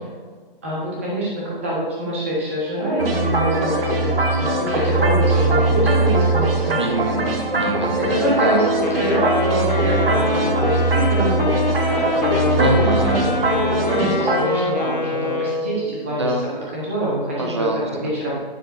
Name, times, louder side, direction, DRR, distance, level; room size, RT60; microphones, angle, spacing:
voice 1, 0.6-7.2 8.0-11.5 11.9-16.3 16.7-17.5 17.9-18.3, equal, 15° right, -6 dB, 1.3 m, -25 dB
sound 1, 3.0-14.4, right 2 dB, 80° right, 1.5 m, -21 dB
voice 2, 6.8-8.7 12.6-13.2 16.0-16.5 17.4-18.1, right 2 dB, 30° right, 3 dB, 0.8 m, -25 dB
Wind instrument woodwind instrument, 8.7-15.9, left 2 dB, 50° left, 1.5 m, -25 dB
9.5 x 7.1 x 2.6 m, 1.5 s
hypercardioid pair, 175°, 29 cm